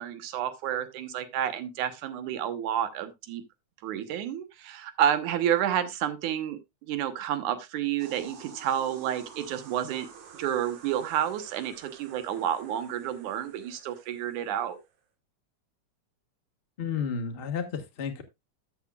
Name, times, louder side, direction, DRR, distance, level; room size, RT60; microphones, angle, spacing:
voice 1, 0.0-3.4 3.8-6.6 6.9-10.1 10.4-14.8, right 10 dB, 90° right, 2.5 m, -30 dB
sound 1, 8.0-14.9, right 7 dB, 75° right, 2.8 m, -50 dB
voice 2, 16.8-18.2, left 6 dB, 90° left, 0.5 m, -32 dB
13.5 x 7.9 x 2.3 m
omnidirectional pair, 3.3 m